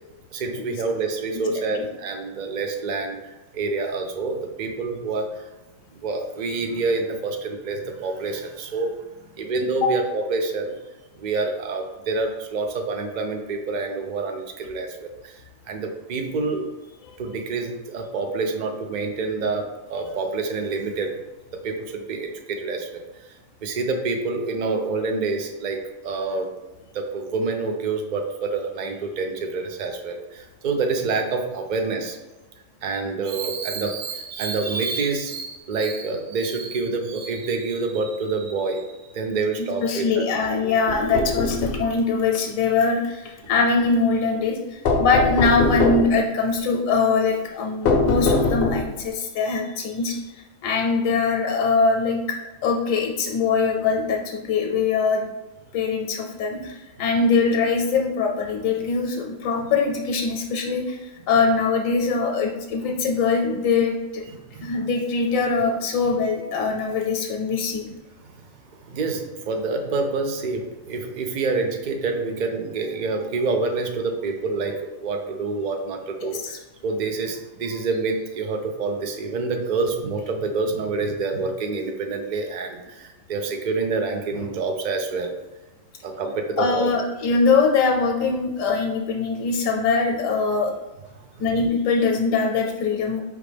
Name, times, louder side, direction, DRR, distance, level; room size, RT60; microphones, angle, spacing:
voice 1, 0.3-5.5 6.0-9.0 9.4-10.7 11.2-15.4 15.7-16.6 17.2-21.2 21.6-23.0 23.6-26.5 26.9-32.2 32.8-40.7 64.5-64.8 68.8-85.3 86.0-86.9, right 3 dB, 80° right, 4 dB, 0.4 m, -27 dB
voice 2, 39.8-52.2 52.6-55.2 55.7-64.2 64.6-67.9 76.2-76.6 86.6-90.7 91.4-93.2, left 4 dB, 80° left, 1 dB, 1.1 m, -22 dB
sound 1, 40.9-41.9 44.9-46.2 47.9-49.0, left 3 dB, 60° left, 0.6 m, -22 dB
4.9 x 3.3 x 3.3 m, 1.1 s
omnidirectional pair, 1.4 m